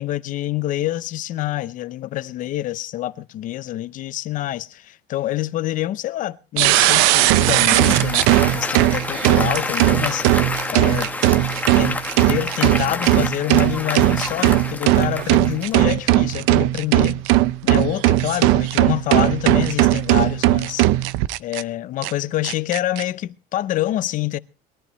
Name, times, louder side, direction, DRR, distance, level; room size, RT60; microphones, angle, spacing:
voice 1, 0.0-11.1 11.7-12.0 12.3-17.3 17.6-20.9 21.4-24.4, left 14 dB, 40° left, 0.6 m, -26 dB
sound 1, 6.6-21.6 22.0-22.1 22.4-23.0, right 17 dB, 80° right, 0.7 m, -18 dB
Applause, 6.9-15.9, left 3 dB, 10° left, 1.1 m, -29 dB
22.0 x 14.0 x 3.1 m
cardioid pair, 170°, 21 cm